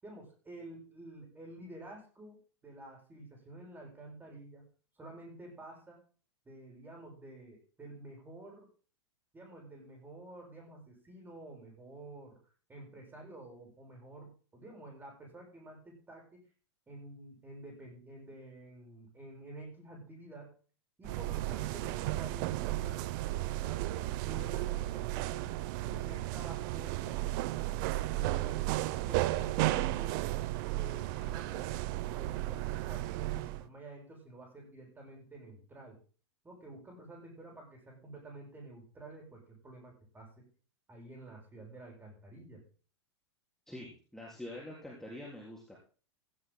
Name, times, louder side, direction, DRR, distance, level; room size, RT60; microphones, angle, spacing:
voice 1, 0.0-4.7 4.9-6.0 6.5-8.7 9.3-12.4 12.7-16.5 16.9-20.5 21.0-25.5 25.9-27.4 28.1-30.2 30.5-36.0 36.4-40.5 40.9-42.6, right 2 dB, 15° right, 0 dB, 7.8 m, -50 dB
sound 1, 21.0-33.6, right 16 dB, 45° right, 0.7 m, -34 dB
voice 2, 43.7-45.8, left 1 dB, 5° left, -4 dB, 3.8 m, -45 dB
17.0 x 17.0 x 2.2 m, 0.39 s
figure-of-eight pair, 100°, 15 cm